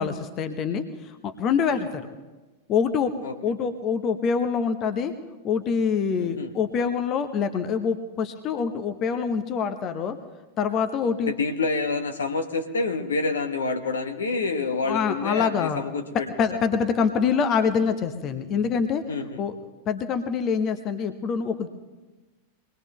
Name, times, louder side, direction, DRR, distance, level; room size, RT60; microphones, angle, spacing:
voice 1, 0.0-2.1 2.7-3.1 3.4-5.1 5.4-10.2 10.6-11.3 14.9-15.8 16.4-19.0 19.4-19.5 19.9-21.7, left 6 dB, 35° left, 9 dB, 0.9 m, -25 dB
voice 2, 6.2-6.5 11.2-16.5 19.1-19.4, left 3 dB, 70° left, 6 dB, 1.1 m, -28 dB
23.5 x 19.5 x 3.1 m, 1.2 s
figure-of-eight pair, 90°, 0 cm